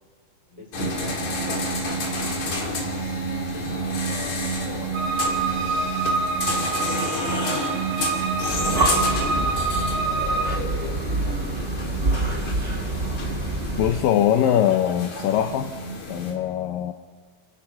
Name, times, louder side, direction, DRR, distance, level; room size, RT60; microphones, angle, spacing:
voice 1, 0.5-2.3 2.8-3.8 4.1-5.1 5.4-9.8 10.2-12.4, left 2 dB, 10° left, -1 dB, 5.2 m, -45 dB
sound 1, 0.7-16.3, equal, 50° left, 3.8 m, -29 dB
sound 2, 4.9-10.5, right 3 dB, 65° right, 3.1 m, -27 dB
Breathing, 8.4-14.1, right 2 dB, 45° right, 0.7 m, -27 dB
voice 2, 13.8-15.7 16.1-16.9, left 10 dB, 75° left, 8 dB, 2.3 m, -22 dB
29.0 x 17.0 x 5.8 m, 1.5 s
omnidirectional pair, 4.5 m